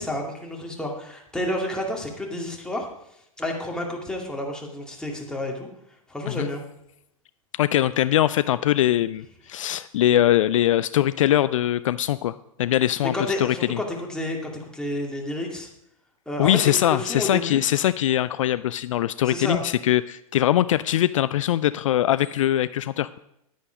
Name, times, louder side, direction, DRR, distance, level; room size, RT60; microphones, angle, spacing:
voice 1, 0.0-2.9 3.4-5.7 6.1-6.6 13.0-15.7 16.3-16.6 16.9-17.6 19.2-19.6, left 1 dB, 5° left, 0 dB, 2.3 m, -30 dB
voice 2, 7.6-13.8 16.4-23.1, left 12 dB, 60° left, 15 dB, 0.4 m, -22 dB
10.5 x 9.7 x 5.0 m, 0.78 s
figure-of-eight pair, 100°, 18 cm